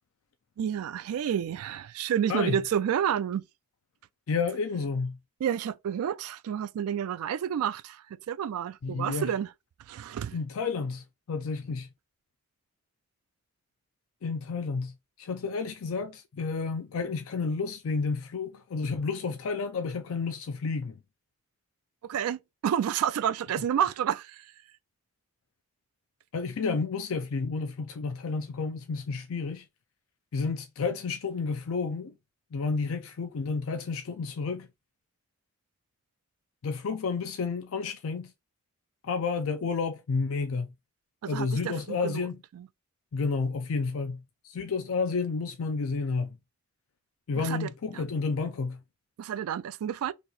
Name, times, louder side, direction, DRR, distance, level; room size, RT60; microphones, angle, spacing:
voice 1, 0.6-3.5 5.4-9.5 9.9-10.4 22.1-24.5 41.2-42.3 42.5-42.7 47.4-48.1 49.2-50.1, right 9 dB, 85° right, 0.3 m, -30 dB
voice 2, 4.3-5.2 8.8-9.3 10.3-11.9 14.2-20.9 26.3-29.7 30.3-32.1 32.5-34.7 36.6-38.3 39.0-40.7 41.3-42.4 43.1-46.4 47.3-48.8, left 4 dB, 75° left, 0.4 m, -31 dB
2.9 x 2.7 x 3.8 m
head